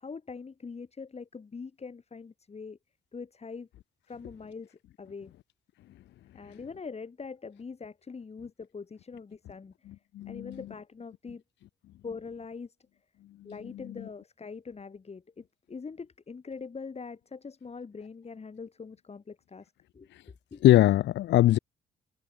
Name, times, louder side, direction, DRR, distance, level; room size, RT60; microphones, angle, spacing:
voice 1, 0.0-2.8 3.1-3.7 4.1-5.3 6.3-9.7 10.3-11.4 12.0-12.7 13.4-20.1 20.5-20.6, left 5 dB, 30° left, 3.0 m, -43 dB
voice 2, 9.9-10.6 13.4-14.1 20.1-20.2 20.6-21.6, left 14 dB, 65° left, 0.4 m, -23 dB
cardioid pair, 90°, 20 cm